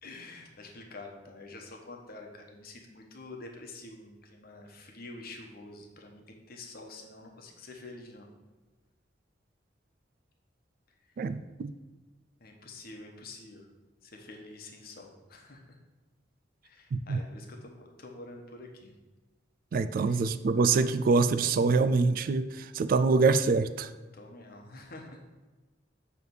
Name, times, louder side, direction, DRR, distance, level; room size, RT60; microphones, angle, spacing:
voice 1, 0.0-8.3 12.4-13.7 14.0-15.6 16.6-18.9 20.0-20.2 23.1-23.2 24.1-25.2, left 2 dB, 55° left, 2 dB, 1.1 m, -47 dB
voice 2, 11.2-11.7 16.9-17.2 19.7-23.9, right 4 dB, 50° right, 12 dB, 0.3 m, -25 dB
6.8 x 3.3 x 6.1 m, 1.2 s
head